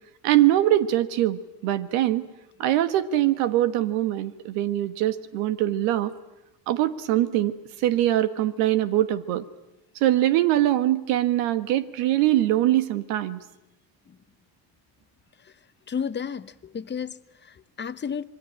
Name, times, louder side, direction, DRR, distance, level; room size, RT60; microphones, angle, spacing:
voice 1, 0.2-2.2 2.6-6.1 6.7-9.4 10.0-13.4, right 13 dB, 85° right, 1.6 m, -23 dB
voice 2, 15.9-18.2, left 7 dB, 20° left, 0.9 m, -33 dB
27.0 x 22.0 x 8.8 m
supercardioid pair, 105°, 49 cm